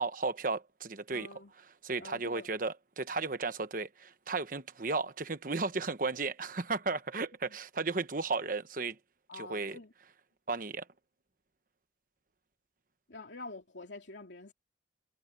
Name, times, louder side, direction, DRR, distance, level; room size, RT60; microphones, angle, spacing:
voice 1, 0.0-1.3 1.8-9.0 9.3-9.8 10.5-10.9, right 3 dB, 45° right, 1.1 m, -34 dB
voice 2, 1.1-1.5 2.0-2.5 7.4-7.6 9.3-9.9 13.1-14.5, left 3 dB, 75° left, 2.7 m, -47 dB
head